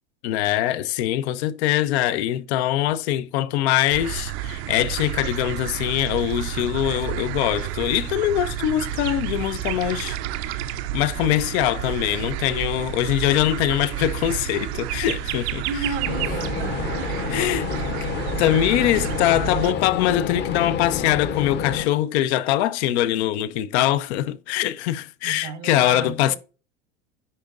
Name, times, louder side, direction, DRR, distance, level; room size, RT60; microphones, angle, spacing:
voice 1, 0.2-10.2 10.9-15.6 17.3-17.6 18.4-26.4, left 13 dB, 65° left, 0.8 m, -23 dB
sound 1, 3.9-19.7, right 11 dB, 65° right, 0.7 m, -30 dB
voice 2, 15.6-17.1 17.7-17.9 25.2-26.4, right 5 dB, 80° right, 1.5 m, -33 dB
sound 2, 16.0-21.9, left 7 dB, 30° left, 0.9 m, -29 dB
10.0 x 3.7 x 2.5 m
supercardioid pair, 115°, 35 cm